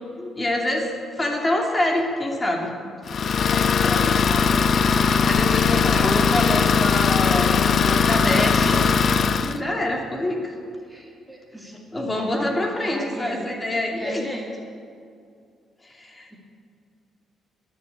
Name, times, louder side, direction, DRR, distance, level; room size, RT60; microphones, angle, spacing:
voice 1, 0.2-2.7 3.5-4.2 5.2-10.6 11.9-14.2 15.8-16.4, left 1 dB, 20° left, 1 dB, 2.5 m, -26 dB
Idling, 3.1-9.6, left 6 dB, 50° left, 0.6 m, -19 dB
voice 2, 4.2-4.6 5.6-6.3 8.3-8.9 10.9-13.5 14.0-14.4, equal, 10° right, 0 dB, 2.1 m, -35 dB
20.5 x 7.3 x 8.1 m, 2.3 s
cardioid pair, 90°, 0 cm